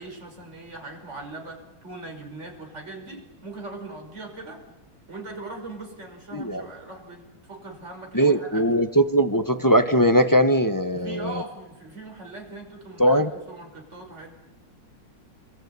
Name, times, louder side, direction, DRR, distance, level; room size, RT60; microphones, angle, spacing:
voice 1, 0.0-4.6 5.1-8.6 10.9-14.3, right 2 dB, 30° right, 1 dB, 6.0 m, -40 dB
voice 2, 6.3-6.6 8.1-11.4 13.0-13.3, right 1 dB, 20° left, 8 dB, 0.6 m, -20 dB
28.0 x 22.0 x 9.6 m, 1.0 s
omnidirectional pair, 2.4 m